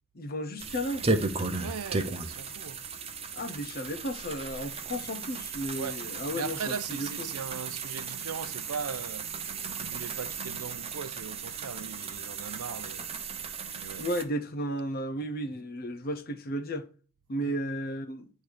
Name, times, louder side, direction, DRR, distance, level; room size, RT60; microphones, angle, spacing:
voice 1, 0.2-1.1 3.3-7.3 14.0-16.9 17.3-18.3, equal, 45° left, 0.7 m, -34 dB
sound 1, 0.6-14.2, right 4 dB, 25° right, 0.7 m, -35 dB
voice 2, 1.5-2.8 5.8-6.0 6.3-13.1 13.8-14.1 17.4-17.6, right 6 dB, 80° right, 0.5 m, -39 dB
8.7 x 3.2 x 6.5 m
head